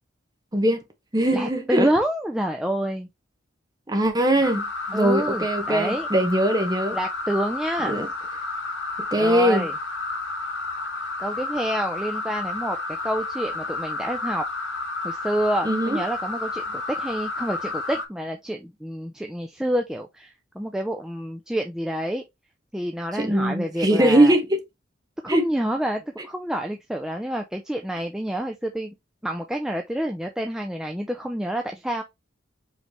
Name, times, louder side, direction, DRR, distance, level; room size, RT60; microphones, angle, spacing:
voice 1, 0.5-0.8 1.1-1.9 3.9-7.0 7.8-8.1 9.1-9.6 15.6-16.0 23.1-24.6 25.3-25.4, right 1 dB, 20° right, 1.0 m, -21 dB
voice 2, 1.3-3.1 4.9-6.1 6.9-8.0 9.1-9.7 11.2-12.8 13.0-14.4 15.0-22.2 22.7-24.3 25.2-28.9 29.2-32.0, right 1 dB, 5° right, 0.4 m, -28 dB
sound 1, 4.4-18.1, left 3 dB, 75° left, 1.2 m, -31 dB
5.2 x 3.3 x 3.1 m
head